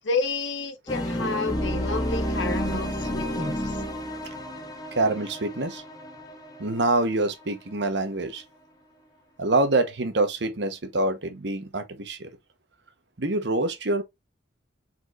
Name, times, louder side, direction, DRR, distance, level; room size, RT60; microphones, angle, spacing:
voice 1, 0.0-3.8, left 3 dB, 70° left, 1.2 m, -30 dB
sound 1, 0.9-7.7, equal, 20° left, 0.9 m, -31 dB
voice 2, 4.9-5.8 6.6-8.4 9.4-12.3 13.2-14.0, right 2 dB, 60° right, 1.0 m, -25 dB
4.6 x 4.3 x 2.5 m
head